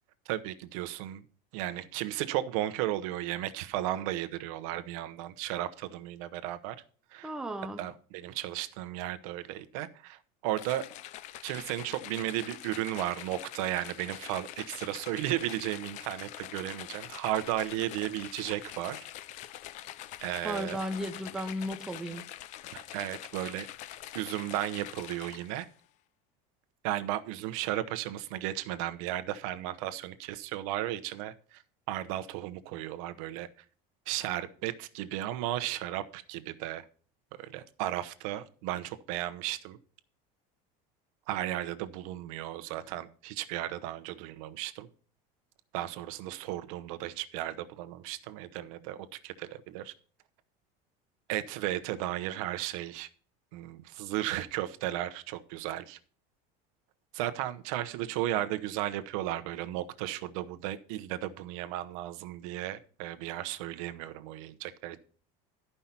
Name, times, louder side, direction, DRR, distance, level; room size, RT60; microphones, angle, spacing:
voice 1, 0.3-1.2 1.5-6.8 7.1-7.3 7.8-10.8 11.4-19.0 20.2-20.8 22.7-23.7 24.1-25.7 26.8-31.6 31.9-33.5 34.1-36.9 37.4-39.8 41.3-44.9 45.7-49.9 51.3-53.1 53.5-56.0 57.1-65.0, right 14 dB, 75° right, 0.9 m, -35 dB
voice 2, 7.2-7.8 20.4-22.2, equal, 5° right, 0.5 m, -35 dB
sound 1, 10.6-25.7, left 13 dB, 45° left, 0.5 m, -45 dB
12.0 x 5.5 x 5.7 m
cardioid pair, 165°, 18 cm